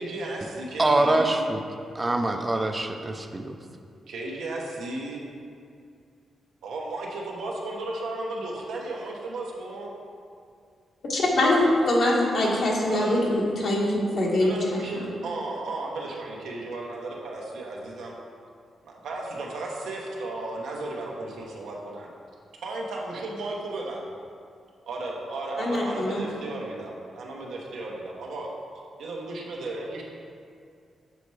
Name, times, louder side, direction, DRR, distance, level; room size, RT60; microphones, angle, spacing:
voice 1, 0.0-1.4 4.1-5.3 6.6-9.9 11.6-11.7 12.9-13.2 14.4-18.1 18.8-22.1 22.6-24.0 24.9-28.5 29.0-30.0, right 2 dB, 90° right, -2 dB, 1.1 m, -34 dB
voice 2, 0.8-1.6 1.9-3.6, right 2 dB, 20° right, 5 dB, 0.5 m, -24 dB
voice 3, 11.1-14.6 15.0-15.1 25.6-26.2, left 1 dB, 65° left, -3 dB, 1.4 m, -23 dB
6.9 x 4.3 x 4.7 m, 2.3 s
cardioid pair, 85°, 0 cm